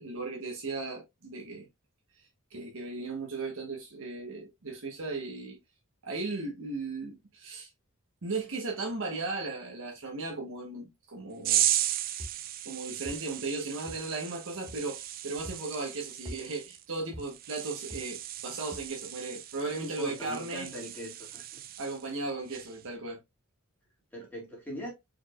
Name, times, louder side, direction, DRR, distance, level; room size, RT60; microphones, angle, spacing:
voice 1, 0.0-1.7 2.2-5.6 6.0-7.7 8.2-11.7 12.6-20.7 21.8-23.2, right 3 dB, 65° right, 1.2 m, -36 dB
sound 1, 11.4-22.1 22.5-22.8, right 12 dB, 40° right, 0.4 m, -35 dB
sound 2, 12.2-12.4 13.0-13.2 13.9-14.0 14.7-14.8 15.4-15.6 16.2-16.4 17.1-17.3 17.9-18.0 18.7-18.9, equal, 20° right, 1.4 m, -42 dB
voice 2, 19.7-21.6 24.1-24.9, equal, 10° left, 2.1 m, -41 dB
4.6 x 4.4 x 2.4 m
head